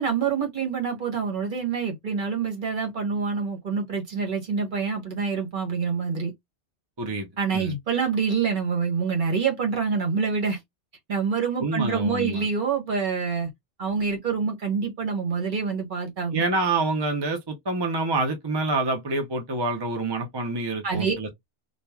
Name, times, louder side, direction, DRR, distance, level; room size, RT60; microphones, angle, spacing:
voice 1, 0.0-6.3 7.4-10.6 11.1-13.5 13.8-16.4 20.8-21.1, right 5 dB, 50° right, 1.0 m, -26 dB
voice 2, 11.6-12.5 16.3-21.3, right 2 dB, 30° right, 0.6 m, -27 dB
3.0 x 2.4 x 2.2 m
omnidirectional pair, 1.2 m